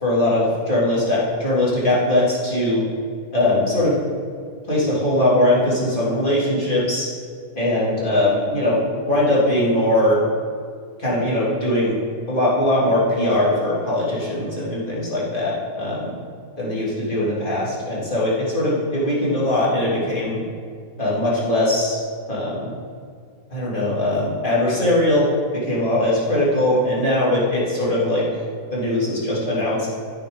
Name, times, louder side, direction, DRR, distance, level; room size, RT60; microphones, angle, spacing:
voice 1, 0.0-2.8 3.3-3.9 4.7-7.1 7.5-10.2 11.0-12.0 12.3-16.1 16.6-20.4 21.0-22.0 22.3-22.7 23.5-25.3 25.6-28.2 28.7-29.9, left 1 dB, 30° left, -8 dB, 3.0 m, -20 dB
14.0 x 6.9 x 3.9 m, 2.2 s
omnidirectional pair, 1.7 m